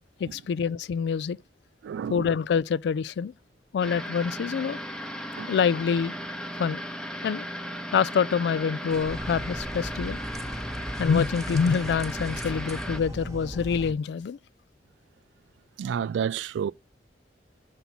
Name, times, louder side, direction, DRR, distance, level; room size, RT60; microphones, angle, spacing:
voice 1, 0.2-1.4 2.1-3.3 3.7-4.8 5.5-6.1 6.6-6.8 7.2-7.4 7.9-10.2 11.0-14.4, left 6 dB, 65° left, 0.3 m, -26 dB
voice 2, 1.8-2.3 5.4-5.5 15.8-16.7, right 7 dB, 85° right, 0.3 m, -30 dB
sound 1, 3.8-13.0, equal, 5° left, 0.7 m, -36 dB
sound 2, 8.9-13.9, equal, 20° right, 1.3 m, -37 dB
6.9 x 4.4 x 4.1 m
head